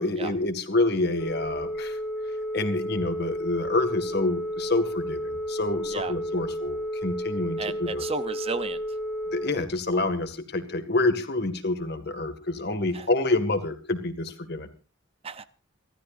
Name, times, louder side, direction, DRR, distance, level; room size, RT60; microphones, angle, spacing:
voice 1, 0.0-2.0 2.5-8.0 9.3-14.7, left 2 dB, 50° left, 9 dB, 2.0 m, -27 dB
Telephone, 1.2-9.5, equal, 5° left, 4.2 m, -32 dB
voice 2, 7.6-8.8 12.9-13.1 15.2-15.4, right 4 dB, 30° right, 13 dB, 0.7 m, -33 dB
28.5 x 13.5 x 2.6 m, 0.34 s
head